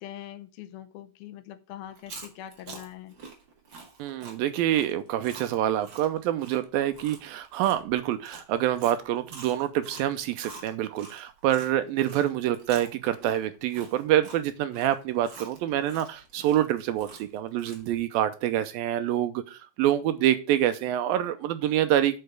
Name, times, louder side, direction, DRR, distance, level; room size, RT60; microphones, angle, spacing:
voice 1, 0.0-3.1, left 12 dB, 75° left, 2.4 m, -43 dB
Chewing mastication, 1.9-11.7 12.1-18.0, right 4 dB, 40° right, 1.9 m, -46 dB
voice 2, 4.0-22.2, right 12 dB, 75° right, 2.3 m, -26 dB
6.6 x 6.5 x 6.6 m
omnidirectional pair, 4.5 m